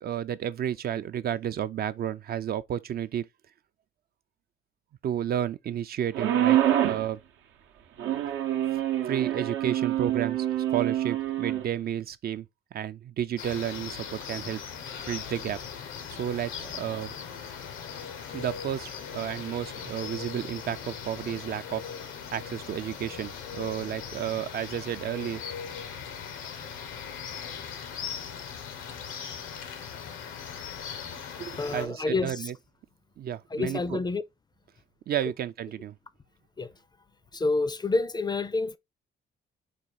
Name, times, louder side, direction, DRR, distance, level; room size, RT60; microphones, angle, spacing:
voice 1, 0.0-3.3 5.0-7.2 9.0-12.5 12.7-15.6 16.1-17.1 18.3-21.8 22.3-25.4 31.4-32.5 33.2-34.0 35.1-36.0, right 10 dB, 50° right, 0.4 m, -32 dB
sound 1, 6.1-7.1 8.0-11.6, right 12 dB, 80° right, 0.8 m, -26 dB
sound 2, 13.4-31.9, left 7 dB, 85° left, 0.8 m, -39 dB
voice 2, 31.6-32.5 33.5-34.2 36.6-36.7 37.3-38.8, left 3 dB, 20° left, 0.4 m, -28 dB
5.0 x 2.3 x 4.1 m
cardioid pair, 90°, 20 cm